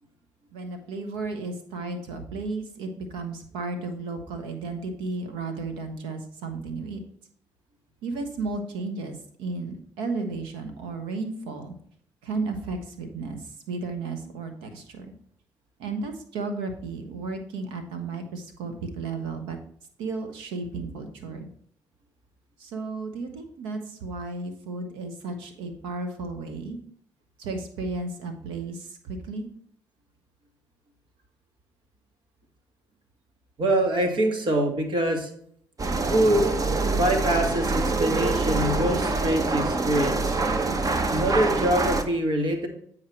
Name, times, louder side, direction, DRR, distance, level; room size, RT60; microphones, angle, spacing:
voice 1, 0.5-7.0 8.0-11.7 12.2-15.1 15.8-19.6 20.0-21.5 22.6-26.8 27.4-29.5, right 3 dB, 85° right, 7 dB, 1.2 m, -33 dB
voice 2, 33.6-35.3 36.1-36.5 36.9-40.4 41.1-42.7, right 1 dB, 70° right, 3 dB, 1.9 m, -24 dB
sound 1, 35.8-42.0, right 3 dB, 40° right, 1.0 m, -25 dB
9.0 x 4.7 x 4.5 m, 0.63 s
hypercardioid pair, 45°, 9 cm